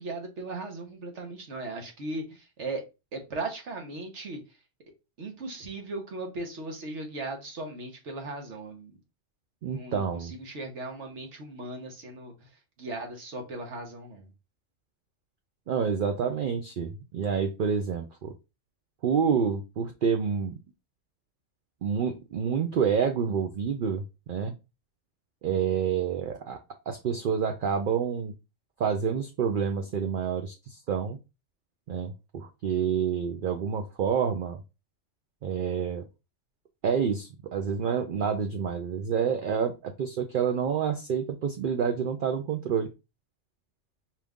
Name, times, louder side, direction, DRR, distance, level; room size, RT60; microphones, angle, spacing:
voice 1, 0.0-2.8 3.1-4.4 5.2-9.0 9.6-12.5 12.8-14.3, right 2 dB, 75° right, 3 dB, 1.4 m, -37 dB
voice 2, 9.6-10.3 15.7-18.3 19.0-20.5 21.8-24.5 25.4-26.6 26.9-28.3 28.8-31.2 31.9-34.6 35.4-36.0 36.8-42.9, right 7 dB, 60° right, 5 dB, 0.6 m, -28 dB
4.5 x 2.5 x 3.5 m, 0.27 s
omnidirectional pair, 1.2 m